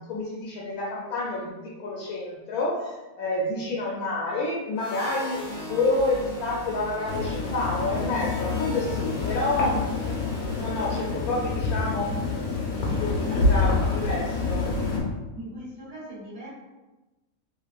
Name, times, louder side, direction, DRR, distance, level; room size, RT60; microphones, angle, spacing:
voice 1, 0.0-9.9 10.5-12.2 12.7-14.7, left 2 dB, 85° left, -4 dB, 1.1 m, -29 dB
sound 1, 4.8-11.3, equal, 20° left, 0.9 m, -38 dB
sound 2, 7.1-15.0, left 3 dB, 65° left, 1.1 m, -27 dB
voice 2, 13.3-14.1 15.3-16.5, equal, 50° right, -10 dB, 1.6 m, -40 dB
3.4 x 3.2 x 2.4 m, 1.1 s
omnidirectional pair, 1.5 m